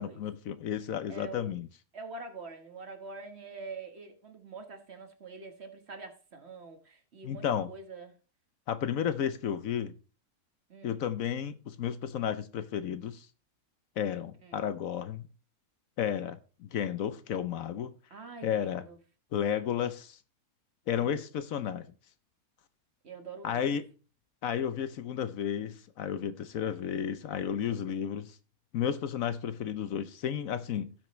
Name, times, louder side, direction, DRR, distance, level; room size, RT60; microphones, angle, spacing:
voice 1, 0.0-1.7 7.2-7.7 8.7-9.9 10.8-13.3 14.0-15.3 16.0-17.9 18.4-18.9 19.3-20.2 20.9-21.9 23.4-23.8 24.4-28.4 28.7-30.9, left 8 dB, 70° left, 1.1 m, -32 dB
voice 2, 1.1-1.5 1.9-8.2 10.7-11.0 14.4-14.6 16.0-16.3 18.1-19.0 20.9-21.2 23.0-23.8, right 3 dB, 45° right, 1.5 m, -45 dB
17.5 x 5.9 x 3.1 m
omnidirectional pair, 1.6 m